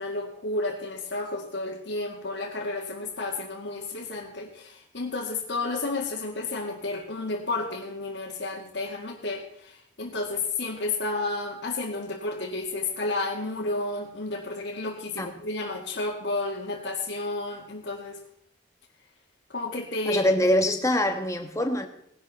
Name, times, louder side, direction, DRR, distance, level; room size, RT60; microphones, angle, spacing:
voice 1, 0.0-18.2 19.5-20.2, left 2 dB, 75° left, 2.1 m, -31 dB
voice 2, 20.1-21.9, left 1 dB, 15° left, 1.4 m, -24 dB
18.5 x 12.0 x 4.2 m
head